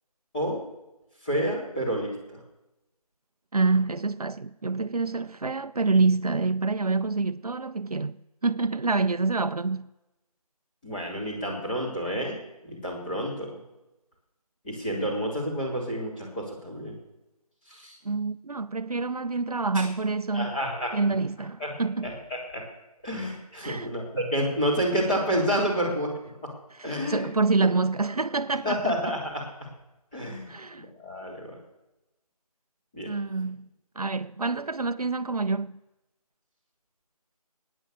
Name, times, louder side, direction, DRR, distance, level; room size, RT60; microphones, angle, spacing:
voice 1, 1.2-2.4 10.8-12.4 12.6-13.6 14.6-17.0 17.7-18.0 19.7-19.9 20.3-20.9 21.6-21.7 22.0-22.6 23.0-26.1 26.8-27.3 28.6-29.7 30.1-30.5 30.8-31.6 32.9-33.1, equal, 15° left, 3.3 m, -29 dB
voice 2, 3.5-9.9 18.0-20.5 20.9-22.1 23.6-24.0 26.8-29.0 30.5-30.8 33.1-33.7 34.0-35.8, right 3 dB, 70° right, 0.7 m, -27 dB
20.5 x 9.9 x 6.6 m
figure-of-eight pair, 170°, 20 cm